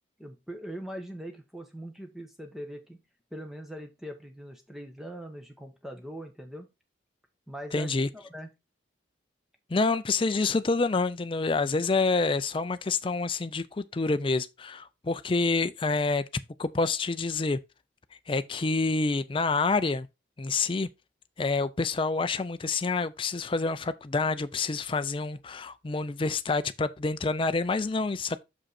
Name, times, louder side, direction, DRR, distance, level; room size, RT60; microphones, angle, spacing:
voice 1, 0.2-3.0 3.3-6.7 7.5-8.5, right 1 dB, ahead, 1.1 m, -41 dB
voice 2, 7.7-8.1 9.7-16.2 16.6-17.6 18.3-20.1 20.4-20.9 21.4-28.4, left 3 dB, 25° left, 0.4 m, -27 dB
6.5 x 5.1 x 4.2 m
head